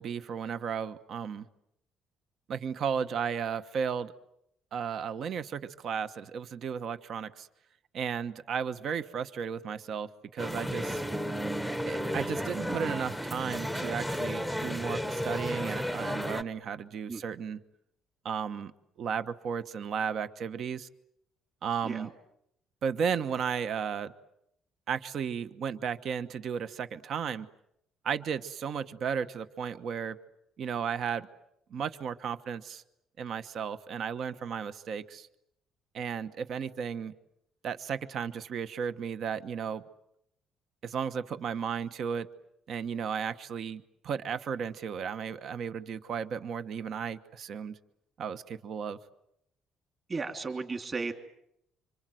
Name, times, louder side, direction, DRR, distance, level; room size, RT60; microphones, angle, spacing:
voice 1, 0.0-1.4 2.5-4.1 4.7-7.5 7.9-11.0 11.9-17.6 18.2-18.7 19.0-20.9 21.6-22.1 22.8-24.1 24.9-27.5 28.0-30.2 30.6-31.3 31.7-32.8 33.2-35.3 35.9-37.1 37.6-39.8 40.8-42.3 42.7-47.8 48.2-49.0, right 7 dB, 50° right, 12 dB, 1.1 m, -34 dB
sound 1, 10.4-16.4, equal, 5° right, 1.0 m, -33 dB
voice 2, 50.1-51.1, right 4 dB, 25° right, 5 dB, 2.9 m, -34 dB
27.0 x 26.0 x 7.8 m, 0.77 s
cardioid pair, 150°, 0 cm